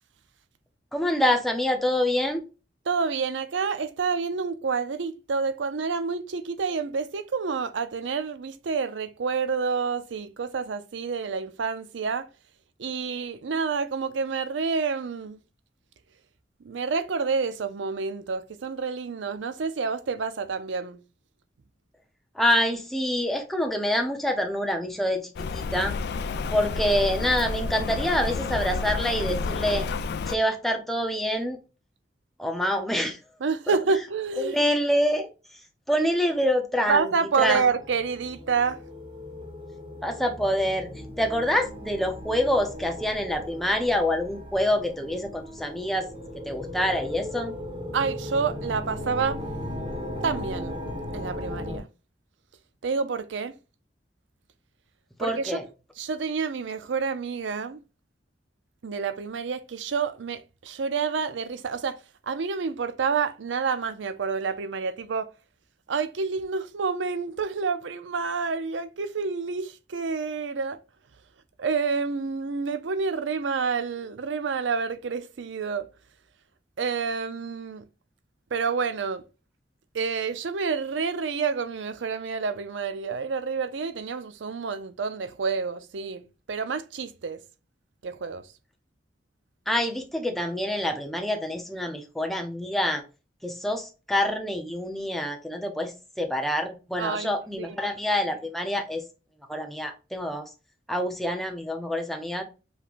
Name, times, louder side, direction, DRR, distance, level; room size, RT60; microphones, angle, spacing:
voice 1, 0.9-2.4 22.3-25.9 26.5-29.9 30.3-31.6 32.4-33.2 34.4-35.3 35.9-37.6 40.0-40.9 41.2-46.1 46.4-47.5 55.2-55.6 89.7-93.0 93.4-99.0 99.5-100.5 100.9-102.4, left 1 dB, ahead, 0.7 m, -26 dB
voice 2, 2.9-12.3 12.8-15.4 16.6-21.0 33.4-34.6 36.9-38.8 47.9-49.4 50.2-50.8 51.1-51.9 52.8-53.5 55.2-55.6 56.0-57.8 58.8-65.3 65.9-70.8 71.6-75.9 76.8-77.8 78.5-79.2 79.9-87.4 88.0-88.4 97.0-97.8, right 5 dB, 85° right, 0.5 m, -28 dB
Rain, 25.4-30.4, left 4 dB, 60° left, 0.3 m, -30 dB
sound 1, 37.4-51.8, left 1 dB, 30° right, 1.0 m, -37 dB
5.2 x 3.2 x 2.5 m
head